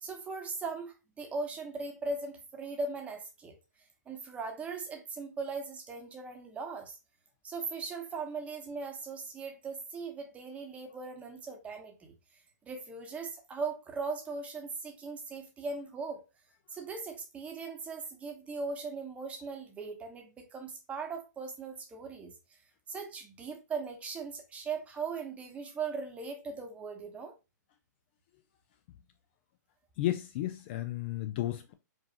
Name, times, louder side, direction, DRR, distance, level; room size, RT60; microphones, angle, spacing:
voice 1, 0.0-3.6 4.1-7.0 7.4-12.1 12.6-16.2 16.7-22.3 22.9-27.3, right 4 dB, 15° right, 0.8 m, -39 dB
voice 2, 30.0-31.7, left 14 dB, 35° left, 0.4 m, -33 dB
4.8 x 2.5 x 2.8 m
hypercardioid pair, 140°, 10 cm